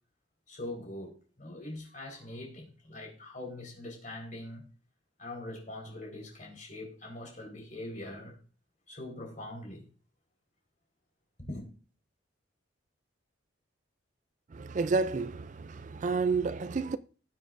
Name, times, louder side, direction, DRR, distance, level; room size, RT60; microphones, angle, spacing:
voice 1, 0.5-4.6 5.2-8.4 8.9-9.9 11.4-11.7, left 1 dB, 40° left, 4.3 m, -42 dB
voice 2, 14.5-17.0, right 4 dB, 40° right, 0.4 m, -30 dB
19.5 x 7.5 x 2.6 m
head